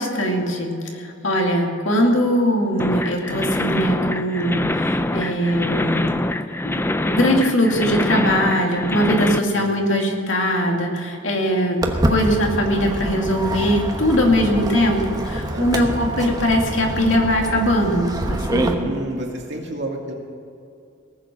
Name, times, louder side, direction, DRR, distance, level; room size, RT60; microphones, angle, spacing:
voice 1, 0.0-6.1 6.6-11.8 12.1-19.0, equal, 75° left, 1 dB, 2.4 m, -21 dB
sound 1, 2.8-9.4, left 1 dB, 10° left, 0.4 m, -24 dB
Walk footsteps, 11.8-18.7, right 1 dB, 20° right, 1.0 m, -26 dB
voice 2, 15.5-16.0 18.8-20.1, right 1 dB, 60° right, -1 dB, 2.5 m, -30 dB
18.5 x 7.6 x 7.5 m, 2.5 s
head